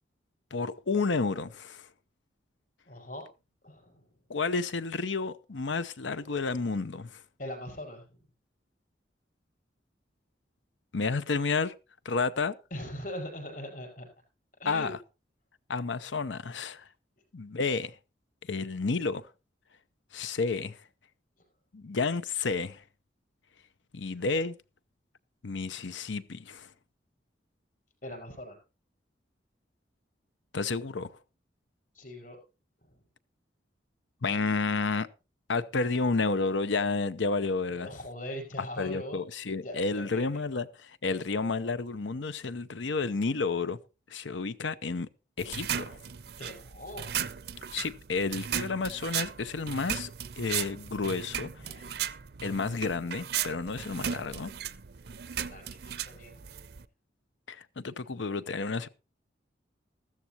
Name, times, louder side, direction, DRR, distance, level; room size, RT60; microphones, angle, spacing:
voice 1, 0.5-1.9 4.3-7.2 10.9-11.7 12.0-12.5 14.7-15.0 15.7-16.9 17.3-17.9 18.5-19.3 20.1-20.8 21.7-22.8 23.9-24.5 25.4-26.7 30.5-31.2 34.2-35.1 35.5-37.9 38.8-43.8 44.1-45.1 45.4-46.0 47.7-50.1 50.4-51.5 52.4-54.5 57.5-58.9, left 4 dB, 80° left, 0.7 m, -31 dB
voice 2, 2.9-3.3 3.6-4.1 7.4-8.2 12.7-14.1 14.6-14.9 28.0-28.6 31.9-32.4 37.7-39.2 39.6-40.4 46.4-47.2 51.6-51.9 55.5-56.5, left 1 dB, 45° left, 5.7 m, -41 dB
sound 1, 45.4-56.8, right 9 dB, 55° right, 0.6 m, -36 dB
14.5 x 13.5 x 2.9 m
head